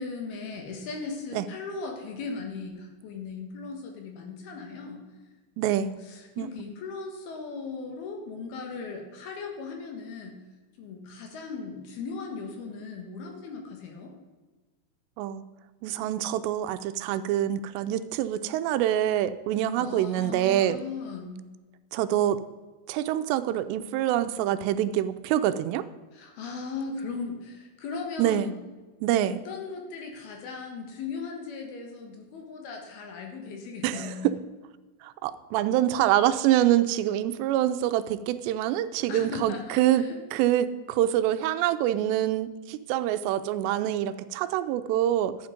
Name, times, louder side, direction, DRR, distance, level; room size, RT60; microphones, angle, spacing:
voice 1, 0.0-5.0 5.6-10.4 10.8-14.1 19.8-21.4 26.1-28.6 29.2-34.4 39.1-40.2, left 4 dB, 70° left, 2 dB, 3.3 m, -38 dB
voice 2, 5.6-5.9 6.4-6.5 15.2-15.4 15.8-20.8 21.9-22.4 22.9-25.9 28.2-28.5 29.0-29.4 33.8-34.4 35.0-45.4, right 12 dB, 85° right, 11 dB, 2.8 m, -25 dB
12.0 x 8.6 x 5.1 m, 1.2 s
omnidirectional pair, 4.9 m